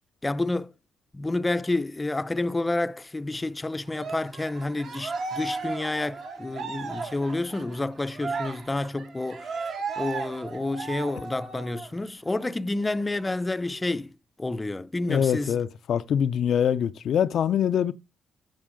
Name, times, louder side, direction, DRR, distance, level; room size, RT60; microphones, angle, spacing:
voice 1, 0.2-0.7 1.1-9.6 10.0-14.1 14.4-15.5, left 2 dB, 15° left, 0.6 m, -29 dB
Cheering, 3.9-11.9 12.3-12.4 12.8-13.8, right 4 dB, 70° right, 3.3 m, -36 dB
voice 2, 15.1-17.9, left 8 dB, 65° left, 0.6 m, -24 dB
15.0 x 5.4 x 5.1 m
cardioid pair, 90°, 0 cm